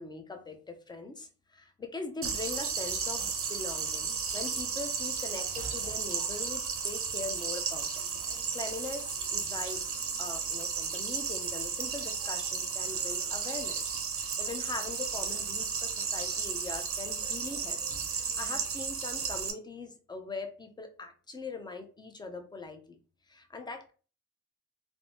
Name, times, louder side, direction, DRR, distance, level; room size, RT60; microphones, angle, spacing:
voice 1, 0.0-17.8 18.1-23.0 23.3-23.9, left 3 dB, 15° left, 6 dB, 0.5 m, -42 dB
sound 1, 2.2-19.5, right 6 dB, 45° right, 0.6 m, -34 dB
3.4 x 2.0 x 2.6 m, 0.38 s
cardioid pair, 90°, 30 cm